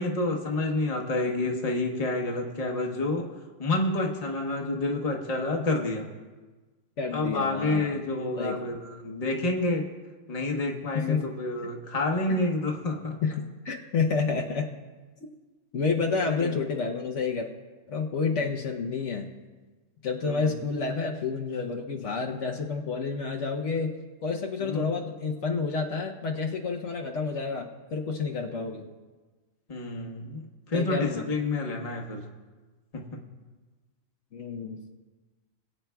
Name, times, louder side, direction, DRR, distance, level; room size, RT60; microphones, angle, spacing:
voice 1, 0.0-3.3 3.6-6.1 7.1-9.9 10.3-13.2 16.3-16.5 18.3-18.4 20.2-20.5 24.6-25.0 29.7-30.4 30.7-32.3 32.9-33.1, left 2 dB, 30° left, 1 dB, 1.1 m, -29 dB
voice 2, 7.0-7.9 8.4-8.7 10.9-11.2 12.3-12.4 13.2-14.7 15.7-17.5 17.9-19.3 20.0-23.9 24.2-28.9 30.7-31.2 34.3-34.8, left 4 dB, 70° left, 1 dB, 1.2 m, -29 dB
22.0 x 9.0 x 2.3 m, 1.3 s
omnidirectional pair, 1.3 m